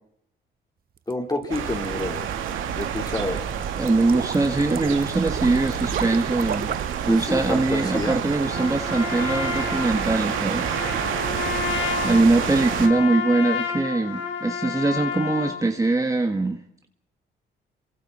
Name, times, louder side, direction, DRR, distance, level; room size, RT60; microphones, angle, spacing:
sound 1, 1.0-7.0, right 9 dB, 50° right, 0.8 m, -34 dB
voice 1, 1.1-2.3 2.7-3.5 7.0-8.2, left 2 dB, 20° left, 2 dB, 4.2 m, -28 dB
sound 2, 1.5-12.9, right 8 dB, 80° right, 2.3 m, -29 dB
voice 2, 3.8-6.7 7.0-10.8 12.0-16.6, right 2 dB, 15° right, 5 dB, 1.5 m, -22 dB
Trumpet, 8.4-15.6, left 7 dB, 70° left, 5.2 m, -30 dB
27.5 x 24.0 x 4.4 m, 0.78 s
cardioid pair, 90°, 20 cm